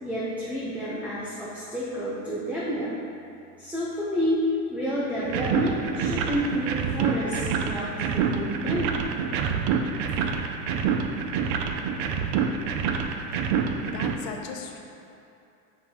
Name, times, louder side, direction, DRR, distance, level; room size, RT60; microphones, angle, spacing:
voice 1, 0.0-2.9 3.6-9.0, equal, 5° right, -9 dB, 0.7 m, -29 dB
sound 1, 5.2-14.1, right 6 dB, 45° right, 0.4 m, -27 dB
voice 2, 13.4-14.8, left 5 dB, 45° left, 2 dB, 0.8 m, -39 dB
6.8 x 5.7 x 2.8 m, 2.7 s
supercardioid pair, 135°, 41 cm